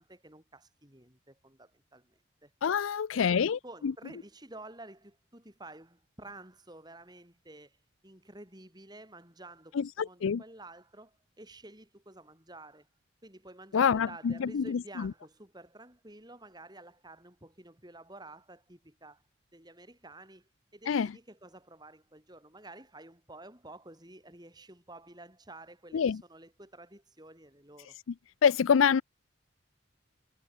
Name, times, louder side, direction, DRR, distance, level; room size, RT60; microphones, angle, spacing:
voice 1, 0.0-2.5 3.1-7.8 8.0-12.9 13.2-19.2 19.5-28.0, right 2 dB, 20° right, 5.6 m, -51 dB
voice 2, 2.6-3.9 9.7-10.4 13.7-15.1 20.9-21.1 25.9-26.2 28.4-29.0, left 7 dB, 85° left, 0.4 m, -26 dB
head